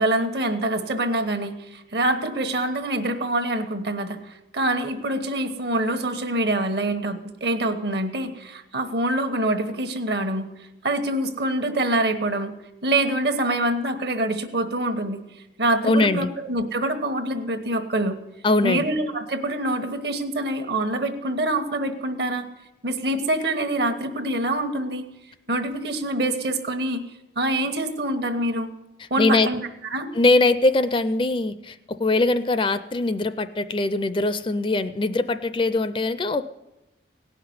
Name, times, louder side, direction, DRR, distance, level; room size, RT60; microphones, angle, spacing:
voice 1, 0.0-4.2 4.5-10.5 10.8-12.5 12.8-15.2 15.6-18.2 18.6-22.5 22.8-25.0 25.5-27.0 27.4-28.7 29.1-29.6 29.9-30.1, right 1 dB, 60° right, 8 dB, 1.2 m, -25 dB
voice 2, 15.8-16.3 18.4-18.9 29.0-29.5 30.1-36.4, left 2 dB, 30° left, 12 dB, 0.4 m, -22 dB
17.5 x 5.8 x 9.4 m, 0.97 s
head